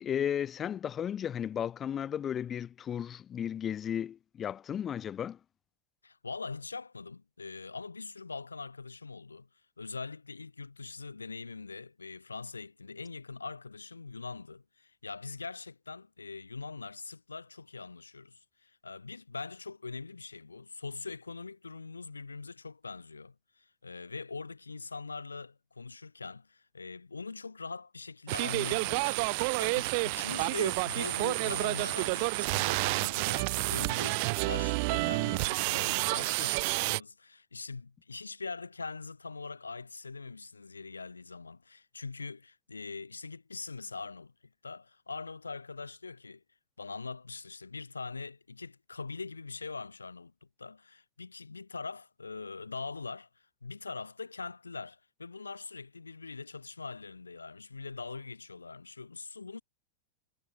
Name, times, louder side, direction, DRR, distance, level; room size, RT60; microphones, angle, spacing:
voice 1, 0.0-5.4, left 9 dB, 25° left, 2.9 m, -34 dB
voice 2, 6.0-9.5 9.8-44.3 44.6-46.4 46.8-50.3 50.6-53.3 53.6-59.6, left 4 dB, 80° left, 5.9 m, -42 dB
sound 1, 28.3-37.0, right 31 dB, 45° right, 1.1 m, -30 dB
figure-of-eight pair, 90°, 0 cm